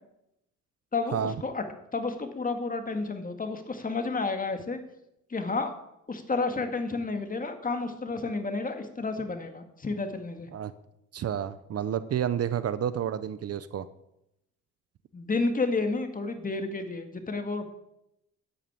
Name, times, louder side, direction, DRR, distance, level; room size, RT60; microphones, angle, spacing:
voice 1, 0.9-1.6 1.9-4.8 5.3-5.7 6.1-10.5 15.1-17.6, left 3 dB, 30° left, 6 dB, 2.0 m, -31 dB
voice 2, 11.1-13.9, right 9 dB, 55° right, 15 dB, 0.7 m, -30 dB
9.3 x 9.1 x 8.9 m, 0.84 s
cardioid pair, 90°, 30 cm